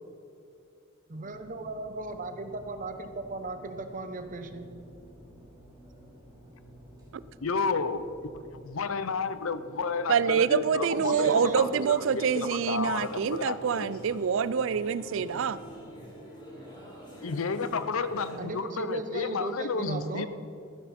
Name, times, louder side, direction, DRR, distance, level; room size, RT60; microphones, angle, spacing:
sound 1, 1.1-15.8, right 1 dB, 20° right, 2.9 m, -53 dB
voice 1, 1.1-4.7 10.9-11.9 18.4-20.3, right 2 dB, 40° right, 8 dB, 0.9 m, -37 dB
voice 2, 7.4-8.1 8.3-13.9 17.2-20.3, left 4 dB, 75° left, 13 dB, 0.7 m, -31 dB
voice 3, 10.1-15.6, right 7 dB, 65° right, 17 dB, 0.4 m, -26 dB
sound 2, 10.7-18.4, equal, 25° left, 3.4 m, -47 dB
14.0 x 12.5 x 4.3 m, 2.6 s
head